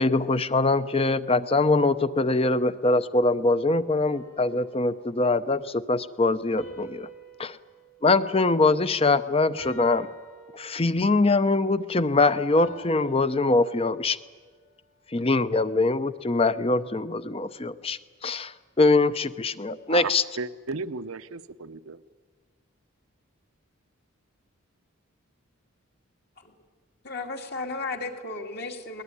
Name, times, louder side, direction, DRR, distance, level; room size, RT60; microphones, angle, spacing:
voice 1, 0.0-7.1 7.4-7.6 8.0-10.1 10.5-14.2 15.1-20.2, left 3 dB, 25° left, 14 dB, 0.7 m, -23 dB
sound 1, 4.1-5.5 6.6-9.1 9.6-11.2 12.6-14.3, right 2 dB, 90° left, 6.2 m, -49 dB
voice 2, 19.9-22.0, right 4 dB, 80° right, 12 dB, 0.8 m, -34 dB
voice 3, 27.0-29.0, left 3 dB, 50° left, 3 dB, 2.4 m, -34 dB
21.0 x 19.5 x 9.8 m, 1.5 s
head